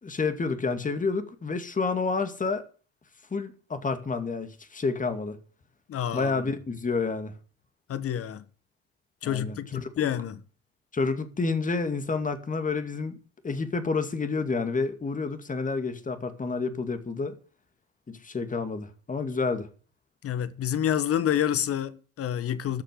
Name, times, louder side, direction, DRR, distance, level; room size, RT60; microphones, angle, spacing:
voice 1, 0.0-2.6 3.3-5.4 6.1-7.3 9.2-10.1 10.9-13.1 13.4-17.4 18.1-19.7, left 4 dB, 25° left, 2.4 m, -29 dB
voice 2, 5.9-6.3 7.9-8.4 9.2-10.3 20.2-22.8, left 10 dB, 50° left, 1.4 m, -28 dB
13.0 x 6.7 x 9.6 m
hypercardioid pair, 65°, 30 cm